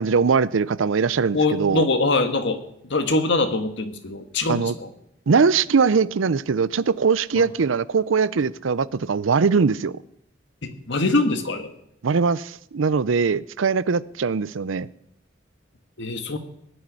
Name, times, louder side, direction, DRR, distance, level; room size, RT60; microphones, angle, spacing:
voice 1, 0.0-1.8 4.5-4.7 5.3-10.0 12.0-14.9, right 5 dB, 80° right, 19 dB, 0.5 m, -21 dB
voice 2, 1.3-4.9 7.4-7.5 10.6-11.7 16.0-16.4, left 2 dB, 65° left, 8 dB, 1.6 m, -23 dB
18.5 x 6.5 x 9.9 m, 0.76 s
head